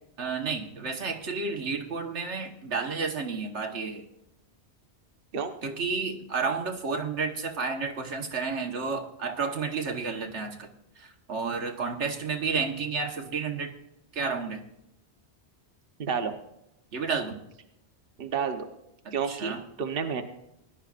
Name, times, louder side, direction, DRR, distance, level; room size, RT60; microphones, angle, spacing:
voice 1, 0.2-4.1 5.6-10.7 11.0-13.7 14.1-14.7 16.9-17.4 19.0-19.6, right 4 dB, 85° right, 4 dB, 1.6 m, -31 dB
voice 2, 16.0-16.4 18.2-18.7 19.1-19.5 19.8-20.2, right 6 dB, 55° right, 5 dB, 1.1 m, -29 dB
19.5 x 11.0 x 2.5 m, 0.84 s
omnidirectional pair, 1.2 m